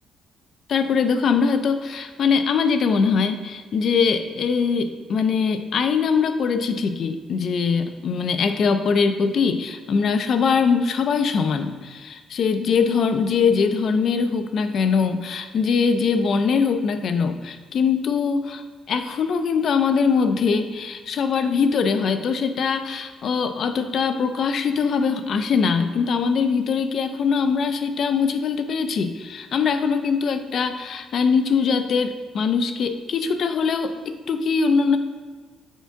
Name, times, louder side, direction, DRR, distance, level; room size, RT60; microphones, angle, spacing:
voice 1, 0.7-18.6 18.9-35.0, left 5 dB, 50° left, 8 dB, 0.4 m, -22 dB
7.0 x 4.4 x 3.5 m, 1.4 s
cardioid pair, 160°, 0 cm